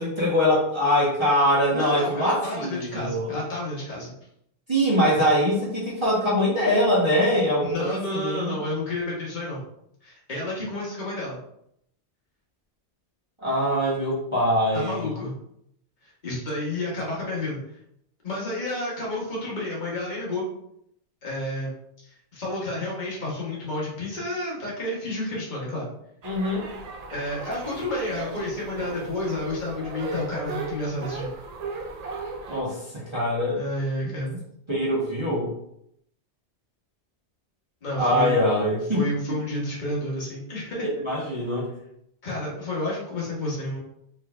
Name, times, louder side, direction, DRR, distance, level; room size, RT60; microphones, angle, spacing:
voice 1, 0.0-3.3 4.7-8.6 13.4-15.1 26.2-26.7 32.5-33.6 34.0-34.4 34.7-35.5 37.9-39.0 41.0-41.7, equal, 25° right, -8 dB, 1.2 m, -23 dB
voice 2, 1.7-4.1 7.6-9.6 10.0-11.4 14.7-15.3 16.0-17.8 18.2-20.4 21.2-25.9 27.1-31.3 33.5-34.3 37.8-38.3 38.9-40.9 42.2-43.8, left 1 dB, 45° left, -5 dB, 1.4 m, -30 dB
sound 1, 26.2-32.6, right 3 dB, 50° right, 0.5 m, -36 dB
4.3 x 3.2 x 2.5 m, 0.75 s
omnidirectional pair, 1.2 m